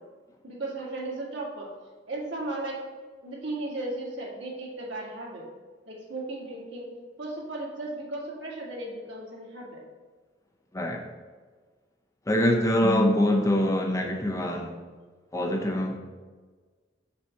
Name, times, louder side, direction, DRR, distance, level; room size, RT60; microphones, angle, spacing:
voice 1, 0.4-1.7 2.1-2.8 3.2-5.5 5.9-6.9 7.2-9.8, right 2 dB, 85° right, -4 dB, 2.0 m, -35 dB
voice 2, 10.7-11.1 12.3-14.8 15.3-16.0, left 1 dB, 20° left, 2 dB, 0.7 m, -24 dB
6.1 x 4.2 x 5.8 m, 1.4 s
head